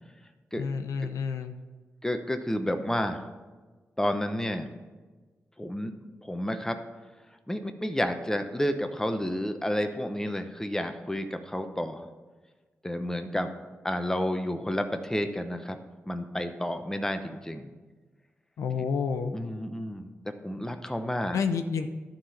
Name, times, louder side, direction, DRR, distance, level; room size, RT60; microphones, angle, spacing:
voice 1, 0.6-1.5 18.6-19.3 21.3-21.9, left 5 dB, 90° left, 8 dB, 0.6 m, -29 dB
voice 2, 2.0-3.2 4.0-4.7 5.6-5.9 6.2-6.8 7.5-12.1 12.8-13.6 13.8-15.8 16.1-17.7 19.3-20.1 20.4-21.4, equal, 10° left, 7 dB, 0.9 m, -30 dB
11.5 x 3.8 x 6.9 m, 1.3 s
cardioid pair, 55°, 5 cm